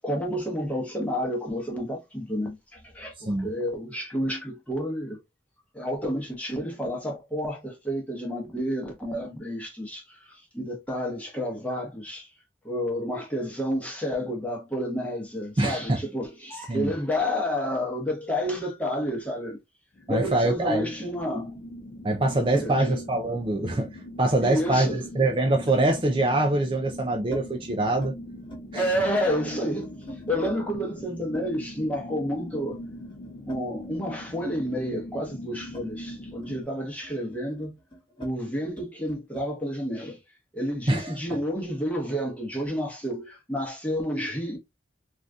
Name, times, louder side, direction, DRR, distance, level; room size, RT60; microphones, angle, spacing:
voice 1, 0.0-5.2 5.7-12.3 12.6-19.6 20.1-21.6 22.5-23.0 24.4-25.1 28.7-32.8 33.5-37.7 38.2-40.2 40.5-44.6, equal, 10° left, 1.0 m, -30 dB
voice 2, 15.6-16.0 16.7-16.9 20.1-20.9 22.0-28.1 28.7-28.9 40.9-41.2, right 2 dB, 30° right, 0.4 m, -24 dB
sound 1, 20.0-36.6, left 1 dB, 45° left, 0.4 m, -42 dB
sound 2, 23.0-24.4 25.7-25.9 26.7-27.5 27.8-28.2 28.4-30.6 31.3-34.2 34.5-39.5, equal, 25° left, 1.3 m, -46 dB
3.8 x 2.5 x 2.3 m
head